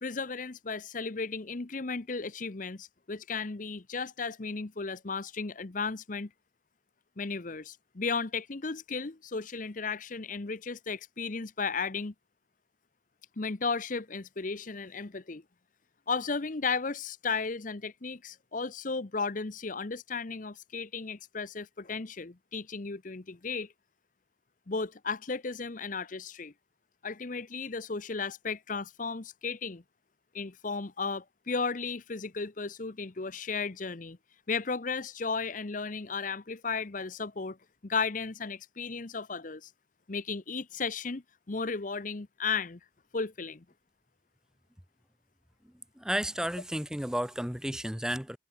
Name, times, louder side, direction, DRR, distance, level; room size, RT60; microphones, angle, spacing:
voice 1, 0.0-6.3 7.2-12.1 13.4-15.4 16.1-23.7 24.7-26.5 27.0-29.8 30.3-34.2 34.5-37.6 37.8-39.7 40.1-42.8 43.1-43.6, left 4 dB, 40° left, 0.8 m, -34 dB
voice 2, 46.0-48.4, equal, 5° right, 0.7 m, -32 dB
head